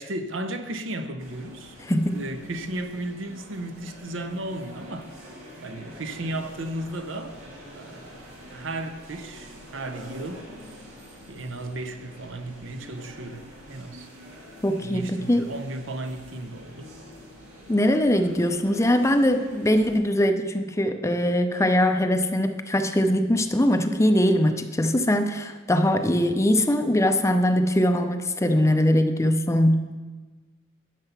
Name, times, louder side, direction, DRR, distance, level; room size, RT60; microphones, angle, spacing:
voice 1, 0.0-5.1 5.6-7.4 7.8-10.5 11.3-14.1 14.8-16.9, right 1 dB, 70° right, 0.9 m, -35 dB
sound 1, 1.2-20.0, equal, 90° right, 2.3 m, -46 dB
voice 2, 1.9-2.2 14.6-15.5 17.7-29.8, left 1 dB, 15° left, 0.5 m, -22 dB
11.5 x 6.8 x 5.9 m
head